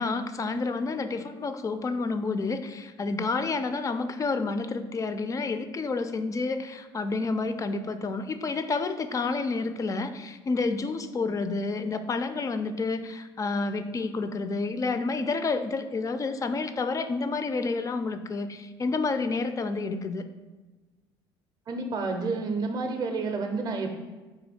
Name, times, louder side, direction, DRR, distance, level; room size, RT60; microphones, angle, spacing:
voice 1, 0.0-20.2, left 3 dB, 25° left, 10 dB, 0.3 m, -29 dB
voice 2, 21.7-23.9, right 3 dB, 30° right, 4 dB, 0.5 m, -29 dB
3.8 x 2.7 x 4.2 m, 1.2 s
hypercardioid pair, 65°, 13 cm